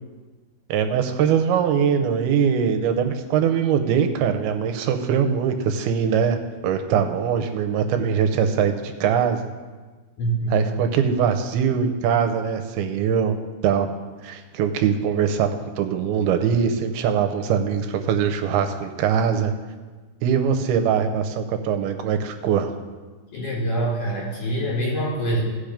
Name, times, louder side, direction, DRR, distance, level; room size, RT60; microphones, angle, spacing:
voice 1, 0.7-6.4 6.6-9.4 10.5-13.4 13.6-13.9 14.2-19.5 20.2-22.7, right 7 dB, 75° right, 6 dB, 2.6 m, -22 dB
voice 2, 10.2-10.7 23.3-25.4, right 1 dB, 40° left, -5 dB, 5.5 m, -25 dB
16.5 x 6.0 x 5.1 m, 1.3 s
omnidirectional pair, 4.7 m